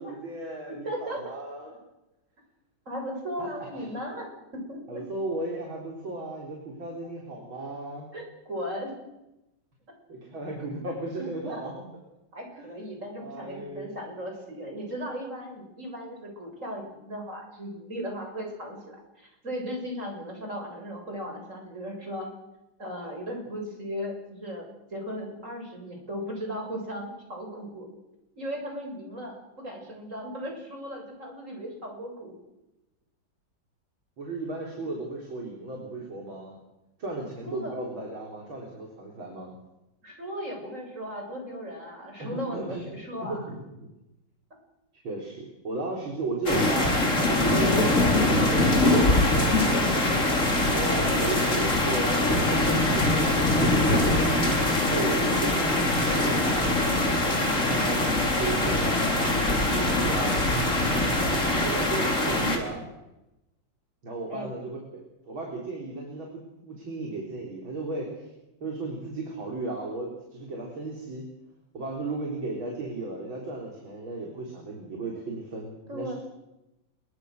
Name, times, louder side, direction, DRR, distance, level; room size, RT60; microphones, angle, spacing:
voice 1, 0.0-1.7 3.4-3.9 4.9-8.1 10.1-11.9 12.6-12.8 13.2-14.0 34.2-36.6 37.0-39.5 42.2-42.9 43.3-43.9 44.9-49.9 50.7-53.9 54.6-57.2 57.6-60.4 61.6-62.9 64.0-68.3 68.6-71.3 71.7-76.1, right 2 dB, 80° right, -1 dB, 4.8 m, -35 dB
voice 2, 0.7-1.3 2.9-5.0 8.1-8.9 11.5-11.7 12.3-22.3 22.8-24.7 24.9-27.9 28.4-32.3 37.4-37.8 40.0-43.4 64.3-64.5 75.9-76.1, equal, 35° right, 1 dB, 7.6 m, -37 dB
sound 1, 46.5-62.6, left 2 dB, 40° left, 4.3 m, -23 dB
26.5 x 23.5 x 6.6 m, 0.95 s
omnidirectional pair, 2.2 m